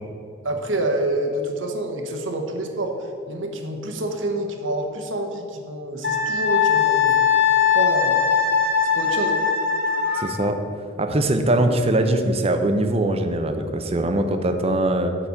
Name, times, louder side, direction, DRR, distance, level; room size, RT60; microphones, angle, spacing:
voice 1, 0.4-7.1 7.7-8.4 8.9-9.4, right 1 dB, 70° right, 4 dB, 1.1 m, -27 dB
Wind instrument woodwind instrument, 6.0-10.4, left 7 dB, 70° left, 1.6 m, -20 dB
voice 2, 10.1-10.6 11.0-15.2, right 1 dB, 30° right, 7 dB, 0.6 m, -21 dB
6.7 x 6.0 x 7.0 m, 2.5 s
head